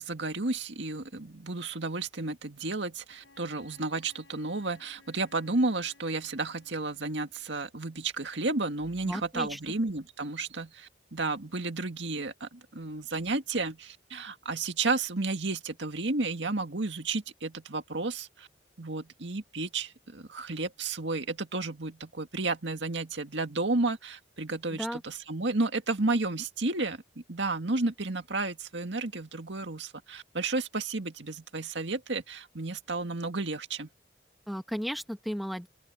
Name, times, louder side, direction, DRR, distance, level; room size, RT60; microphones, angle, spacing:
voice 1, 0.0-18.5 18.8-33.9, right 3 dB, 75° right, 2.0 m, -32 dB
Wind instrument woodwind instrument, 3.2-7.6, left 3 dB, 80° left, 7.3 m, -60 dB
voice 2, 9.0-9.6 24.7-25.0 34.5-35.7, equal, ahead, 1.3 m, -34 dB
open air
head